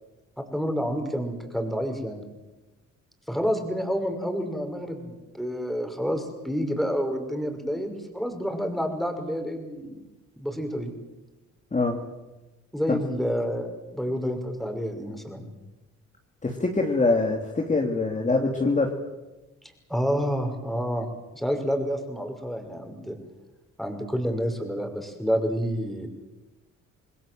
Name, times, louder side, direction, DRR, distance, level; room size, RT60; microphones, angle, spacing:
voice 1, 0.4-2.2 3.3-10.0 10.4-10.9 12.7-15.4 19.9-21.1 21.3-23.2 23.8-26.1, equal, ahead, 5 dB, 6.0 m, -29 dB
voice 2, 16.4-18.9, left 3 dB, 25° left, 1 dB, 3.2 m, -24 dB
27.5 x 20.0 x 7.9 m, 1.1 s
cardioid pair, 90°, 30 cm